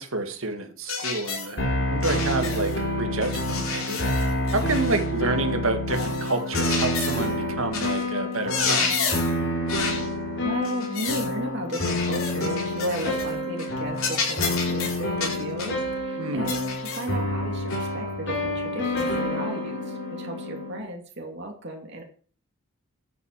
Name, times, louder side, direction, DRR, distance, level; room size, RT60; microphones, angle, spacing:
voice 1, 0.0-1.6 1.9-4.0 4.5-9.0 16.2-16.6, right 2 dB, 65° right, 7 dB, 2.0 m, -29 dB
sound 1, 0.9-1.5 2.0-2.8 3.2-5.1 5.9-7.3 7.7-8.0 8.3-9.4 9.7-10.1 10.6-11.3 11.7-13.3 13.6-13.7 14.0-15.8 16.5-17.1 17.7-17.8 19.0-19.1, left 5 dB, 70° left, 4.5 m, -30 dB
sound 2, 1.6-20.8, left 1 dB, 55° left, 3.7 m, -28 dB
voice 2, 10.4-22.0, right 1 dB, 50° right, 2 dB, 2.6 m, -34 dB
10.5 x 8.1 x 6.8 m, 0.43 s
head